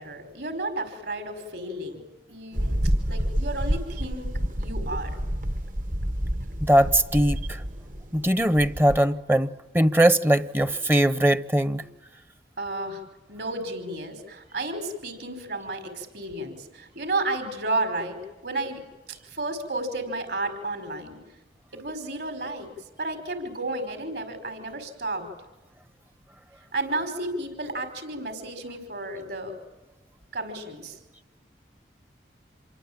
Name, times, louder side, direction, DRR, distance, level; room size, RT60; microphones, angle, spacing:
voice 1, 0.0-2.0 2.3-4.3 4.6-5.2 12.6-13.0 13.3-18.2 18.4-18.8 19.1-21.2 21.7-22.7 23.0-25.3 26.7-29.5 30.3-31.0, right 2 dB, 65° right, 5.3 m, -32 dB
sound 1, 2.5-9.0, equal, 45° right, 1.4 m, -29 dB
voice 2, 6.6-7.6 8.1-11.8, right 1 dB, 10° right, 0.9 m, -21 dB
28.0 x 23.5 x 8.9 m
head